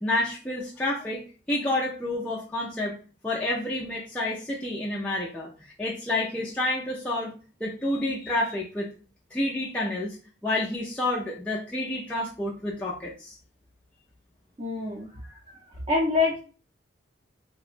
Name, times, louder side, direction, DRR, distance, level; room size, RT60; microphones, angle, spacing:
voice 1, 0.0-2.9 3.2-7.3 7.6-8.9 9.3-10.2 10.4-13.4, left 1 dB, 5° left, -6 dB, 0.3 m, -29 dB
voice 2, 14.6-15.1 15.9-16.4, left 3 dB, 30° right, -5 dB, 0.6 m, -25 dB
2.8 x 2.1 x 2.4 m, 0.36 s
head